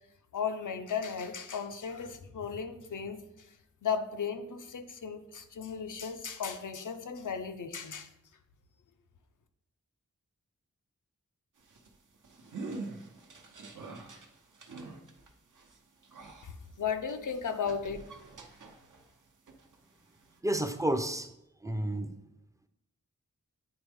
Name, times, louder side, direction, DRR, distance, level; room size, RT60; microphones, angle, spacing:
voice 1, 0.3-3.2 3.8-8.1 16.4-18.0, left 6 dB, 75° left, 8 dB, 0.6 m, -35 dB
sound 1, 11.6-19.2 19.5-20.4, right 3 dB, 75° right, 0.8 m, -46 dB
voice 2, 20.4-21.3 21.6-22.1, right 1 dB, 10° right, 7 dB, 0.4 m, -30 dB
8.9 x 3.5 x 3.5 m, 0.83 s
wide cardioid pair, 90°, 31 cm